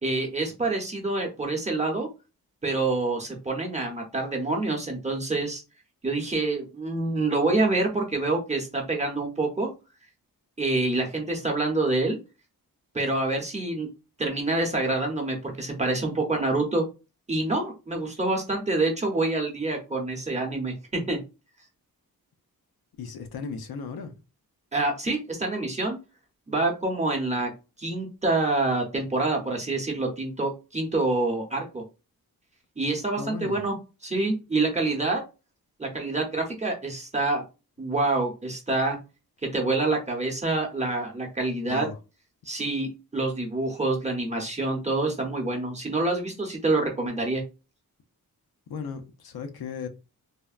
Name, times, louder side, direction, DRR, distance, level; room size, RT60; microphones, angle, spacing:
voice 1, 0.0-2.1 2.6-5.6 6.0-9.7 10.6-12.2 12.9-13.9 14.2-16.8 17.3-21.2 24.7-26.0 26.5-27.5 27.8-31.8 32.8-33.7 34.0-35.2 35.8-37.4 37.8-39.0 39.4-41.9 42.4-47.4, right 2 dB, 20° right, 0.7 m, -26 dB
voice 2, 23.0-24.1 33.2-33.6 41.6-42.0 48.7-49.9, left 5 dB, 80° left, 0.6 m, -36 dB
3.4 x 2.1 x 2.4 m
wide cardioid pair, 145°, 36 cm